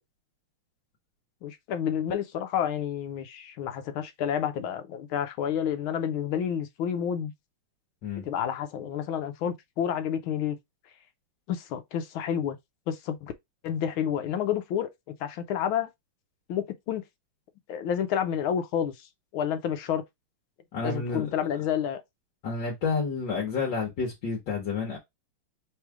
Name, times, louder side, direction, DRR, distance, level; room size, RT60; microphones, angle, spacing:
voice 1, 1.4-7.3 8.2-10.6 11.5-12.6 12.9-13.3 13.6-15.9 16.5-17.0 17.7-18.9 19.3-20.0 20.8-22.0, left 9 dB, 75° left, 1.4 m, -29 dB
voice 2, 20.7-21.3 22.4-25.0, left 4 dB, 60° left, 1.7 m, -30 dB
3.6 x 3.2 x 4.6 m
omnidirectional pair, 2.4 m